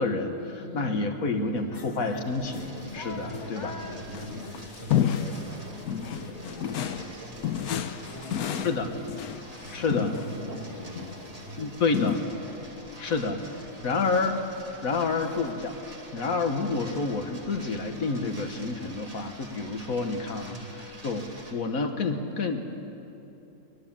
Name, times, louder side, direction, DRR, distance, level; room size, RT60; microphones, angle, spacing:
voice 1, 0.0-3.7 5.9-6.0 8.6-8.9 9.7-10.1 11.6-12.2 13.0-13.4 13.8-14.3 14.8-15.8 16.1-21.2 21.5-22.6, left 3 dB, 70° left, 6 dB, 1.8 m, -29 dB
voice 2, 0.6-2.0 3.2-13.1 13.8-14.0 20.4-20.8, equal, 60° right, -4 dB, 7.1 m, -43 dB
sound 1, 1.7-15.7, left 3 dB, 35° left, 1.3 m, -47 dB
sound 2, 2.2-21.5, right 1 dB, 25° right, 2.3 m, -47 dB
sound 3, 4.0-5.5 5.9-7.1 7.4-10.3 10.9-11.2 11.9-12.2, left 9 dB, 90° left, 1.3 m, -30 dB
21.5 x 21.0 x 7.4 m, 2.9 s
omnidirectional pair, 1.5 m